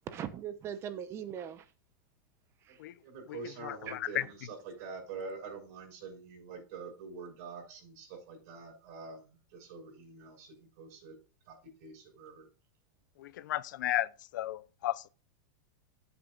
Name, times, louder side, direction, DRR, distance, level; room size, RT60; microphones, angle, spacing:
voice 1, 0.1-1.7 2.6-2.8 3.9-4.3, right 9 dB, 25° right, 0.8 m, -41 dB
voice 2, 3.0-11.2 11.5-12.5, right 4 dB, 50° right, 6.2 m, -46 dB
voice 3, 13.2-14.1 14.3-15.1, left 14 dB, 70° left, 0.6 m, -33 dB
14.0 x 8.0 x 2.4 m
supercardioid pair, 155°, 11 cm